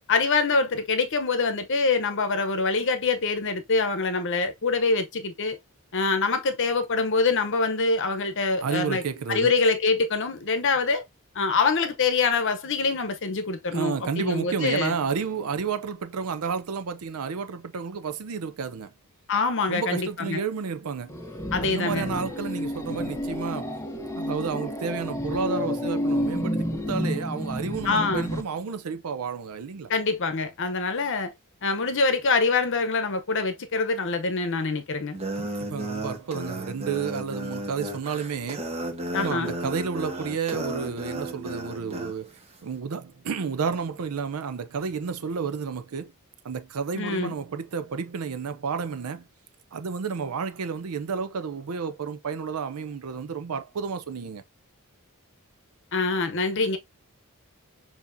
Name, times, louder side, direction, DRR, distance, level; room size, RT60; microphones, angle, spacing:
voice 1, 0.1-5.6 5.9-9.0 9.3-11.0 11.3-15.0 19.3-20.4 21.5-22.1 27.8-28.3 29.9-31.3 31.6-35.2 39.1-39.5 46.9-47.3 55.9-56.8, left 4 dB, 60° left, 0.8 m, -25 dB
voice 2, 8.6-9.5 13.7-18.9 19.7-21.2 21.6-23.8 24.2-29.9 35.4-38.7 39.2-46.1 46.4-49.3 49.7-54.4, right 5 dB, 75° right, 0.5 m, -31 dB
sound 1, 21.1-28.4, left 1 dB, 15° left, 0.7 m, -30 dB
sound 2, 35.1-42.1, right 1 dB, 30° right, 1.0 m, -33 dB
6.9 x 2.8 x 2.6 m
head